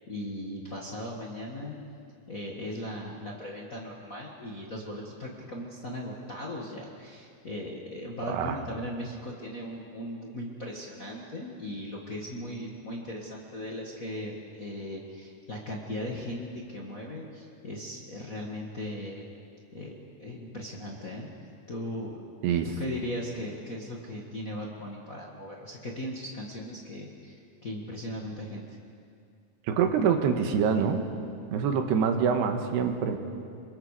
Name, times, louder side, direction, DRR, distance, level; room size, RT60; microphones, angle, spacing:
voice 1, 0.1-1.8 2.3-19.2 19.7-21.3 21.7-22.2 22.8-28.8, left 1 dB, 85° left, -2 dB, 0.7 m, -38 dB
voice 2, 8.3-8.6 22.4-22.7 29.7-31.0 31.5-33.2, right 7 dB, 90° right, 5 dB, 3.4 m, -25 dB
28.0 x 23.0 x 4.9 m, 2.4 s
omnidirectional pair, 4.6 m